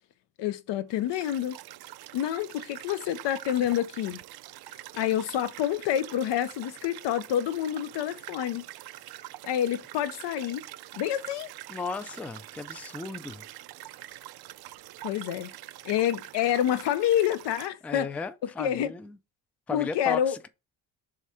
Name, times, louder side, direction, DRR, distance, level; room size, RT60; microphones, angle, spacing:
voice 1, 0.4-1.6 2.1-4.2 4.9-8.6 9.4-10.6 10.9-11.5 15.0-15.5 15.8-18.1 18.4-18.9 19.7-20.4, left 11 dB, 80° left, 0.8 m, -28 dB
sound 1, 0.9-17.7, right 15 dB, 60° right, 0.5 m, -45 dB
voice 2, 11.7-13.4 17.8-19.2 19.7-20.5, left 4 dB, 5° left, 0.3 m, -35 dB
4.9 x 3.6 x 5.6 m
cardioid pair, 150°, 42 cm